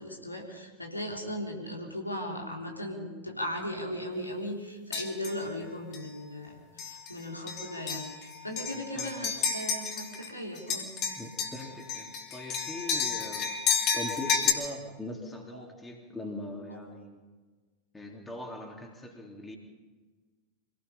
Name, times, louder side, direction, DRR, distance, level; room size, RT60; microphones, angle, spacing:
voice 1, 0.0-10.9, equal, 85° left, -1 dB, 3.4 m, -37 dB
sound 1, 4.9-5.4 5.9-6.1 6.8-7.1 7.5-10.3 10.6-14.5, left 6 dB, 35° left, 3.1 m, -31 dB
voice 2, 8.7-9.3 11.1-13.6 13.9-17.2 17.9-19.6, left 1 dB, 10° left, 1 dB, 3.4 m, -41 dB
26.5 x 18.0 x 5.5 m, 1.3 s
figure-of-eight pair, 90°, 0 cm